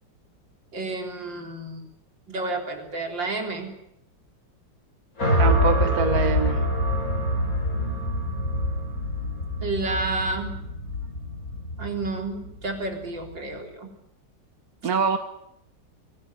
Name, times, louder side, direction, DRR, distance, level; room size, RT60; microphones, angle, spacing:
voice 1, 0.7-1.8 2.3-3.7 9.6-10.5 11.8-13.9, right 2 dB, 75° right, 3 dB, 4.6 m, -30 dB
sound 1, 5.2-13.4, left 1 dB, 45° left, 5.6 m, -25 dB
voice 2, 5.4-6.6 14.8-15.2, right 6 dB, 55° right, 9 dB, 1.7 m, -24 dB
24.0 x 17.5 x 9.8 m, 0.77 s
omnidirectional pair, 2.0 m